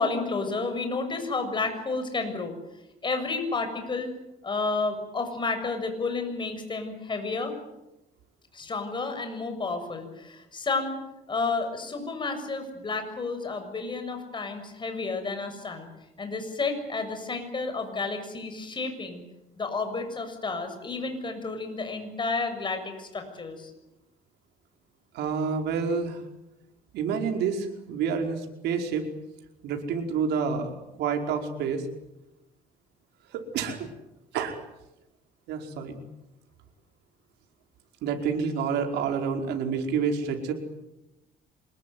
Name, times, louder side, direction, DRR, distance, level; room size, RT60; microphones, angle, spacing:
voice 1, 0.0-2.5 3.0-4.1 4.4-7.5 8.5-11.0 11.3-15.9 16.2-19.2 19.6-23.7, left 3 dB, 30° left, 6 dB, 7.0 m, -31 dB
voice 2, 25.1-26.2 26.9-29.1 29.6-30.7 31.0-31.9 33.3-33.9 34.3-34.6 35.5-36.0 38.0-40.5, right 6 dB, 85° right, 4 dB, 5.0 m, -28 dB
26.5 x 21.5 x 9.5 m, 0.94 s
cardioid pair, 110°, 17 cm